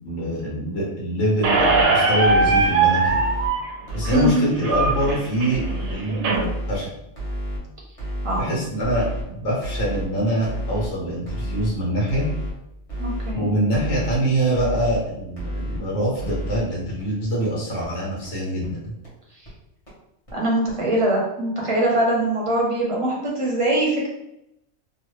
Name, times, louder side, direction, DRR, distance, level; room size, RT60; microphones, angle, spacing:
voice 1, 0.0-3.2 3.9-5.6 5.9-6.3 6.7-6.9 8.4-12.3 13.3-19.0, right 1 dB, 65° left, -5 dB, 1.2 m, -24 dB
sound 1, 1.4-1.8 2.2-2.7 3.1-3.5 3.9-4.3 4.7-5.1 5.5-5.9 6.3-6.8 7.2-7.6 8.0-8.4 8.8-9.2 9.6-10.1 10.4-10.9 11.3-11.7 12.1-12.5 12.9-13.3 13.7-14.2 14.5-15.0 15.4-15.8 16.2-16.6 17.0-17.1 17.4-17.5 17.8-17.9 18.2-18.3 18.6-18.7 19.0-19.1 19.5-19.6 19.9-20.0 20.3-20.4 20.7-20.8, equal, 30° left, 1.1 m, -30 dB
Squeak, 1.4-6.4, right 3 dB, 65° right, 0.9 m, -21 dB
voice 2, 4.1-4.5 8.2-8.5 13.0-13.5 20.3-24.1, right 1 dB, 30° right, -3 dB, 0.7 m, -22 dB
3.0 x 2.2 x 3.1 m, 0.82 s
omnidirectional pair, 1.3 m